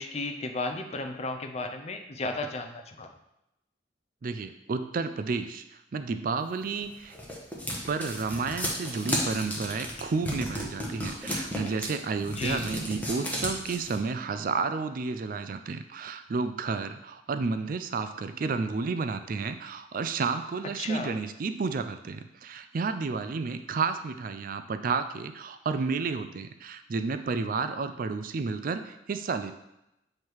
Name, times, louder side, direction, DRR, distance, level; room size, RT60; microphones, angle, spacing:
voice 1, 0.0-3.1 12.3-12.7 20.8-21.2, left 2 dB, 35° left, 5 dB, 0.5 m, -34 dB
voice 2, 4.2-7.2 7.9-29.5, right 4 dB, 50° right, 9 dB, 0.4 m, -31 dB
sound 1, 6.7-14.0, equal, 10° left, 1.1 m, -33 dB
7.2 x 3.2 x 4.6 m, 0.87 s
head